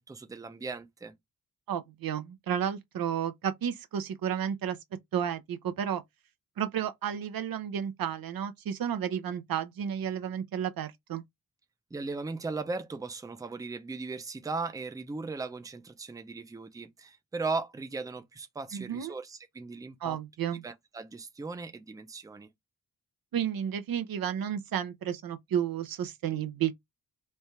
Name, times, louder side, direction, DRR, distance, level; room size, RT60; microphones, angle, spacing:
voice 1, 0.1-1.1 11.9-20.2 20.6-22.5, right 3 dB, 10° right, 0.4 m, -37 dB
voice 2, 1.7-4.8 5.1-6.0 6.6-11.2 18.7-19.1 20.0-20.6 23.3-26.7, right 9 dB, 90° right, 0.7 m, -32 dB
3.3 x 2.3 x 4.2 m
wide cardioid pair, 155°, 34 cm